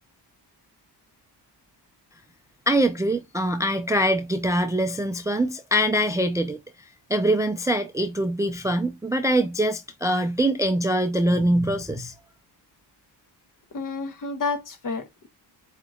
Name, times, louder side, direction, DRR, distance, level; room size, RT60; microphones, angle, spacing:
voice 1, 2.7-6.6 7.1-12.1, right 1 dB, 10° right, 0.4 m, -23 dB
voice 2, 13.7-15.3, left 4 dB, 50° left, 1.3 m, -30 dB
7.8 x 3.0 x 2.3 m
cardioid pair, 135°, 42 cm